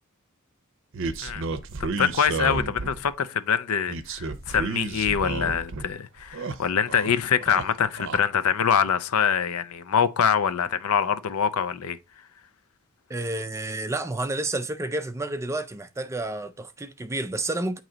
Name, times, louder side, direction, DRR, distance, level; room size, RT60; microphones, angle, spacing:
sound 1, 0.9-3.1 3.9-5.9 6.2-7.1 7.4-8.2, right 3 dB, 60° right, 0.6 m, -31 dB
voice 1, 2.0-12.0, left 7 dB, 80° left, 0.5 m, -24 dB
voice 2, 13.1-17.8, right 2 dB, 15° right, 0.4 m, -30 dB
8.8 x 3.0 x 3.8 m
head